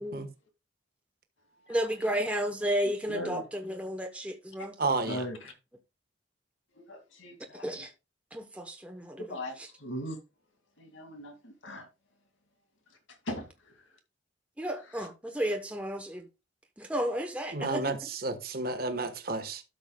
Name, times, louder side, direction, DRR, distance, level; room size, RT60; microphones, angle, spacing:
voice 1, 1.7-4.7 7.6-7.9 8.3-9.7 14.6-16.2 16.8-17.8, equal, 5° right, 0.9 m, -33 dB
voice 2, 3.1-3.4 4.6-4.7 5.1-5.5 6.8-7.7 9.2-10.2 10.8-11.9 13.3-13.5, equal, 80° left, 2.4 m, -38 dB
voice 3, 4.8-5.3 17.5-19.6, right 3 dB, 50° right, 1.3 m, -31 dB
12.5 x 6.7 x 2.2 m
head